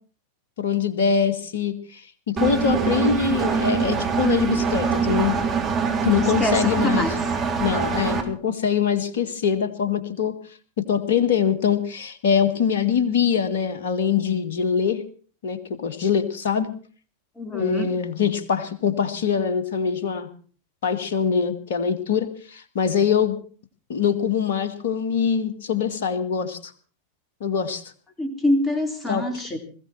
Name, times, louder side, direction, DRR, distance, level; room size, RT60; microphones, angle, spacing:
voice 1, 0.6-5.3 6.0-7.1 7.6-10.4 10.8-15.0 15.4-16.7 17.5-20.3 20.8-23.4 23.9-26.7 27.4-27.8 29.1-29.2, left 7 dB, 55° left, 8 dB, 2.2 m, -23 dB
Engine, 2.4-8.2, right 5 dB, 25° right, 3.5 m, -24 dB
voice 2, 6.4-7.1 17.4-17.9 28.2-29.6, left 1 dB, 15° left, 5 dB, 4.0 m, -24 dB
20.5 x 15.5 x 4.5 m, 0.42 s
figure-of-eight pair, 90°, 0 cm